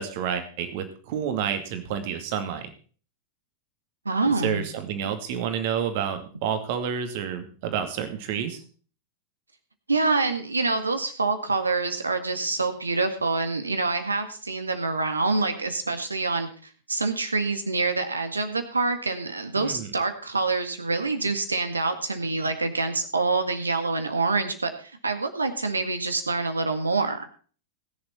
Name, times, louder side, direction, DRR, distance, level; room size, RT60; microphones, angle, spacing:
voice 1, 0.0-2.7 4.4-8.6 19.5-19.9, right 8 dB, 50° right, 8 dB, 2.3 m, -29 dB
voice 2, 4.1-4.7 9.9-16.5 16.9-27.3, right 3 dB, 80° right, 8 dB, 1.9 m, -26 dB
20.5 x 7.2 x 4.4 m, 0.41 s
figure-of-eight pair, 90°, 0 cm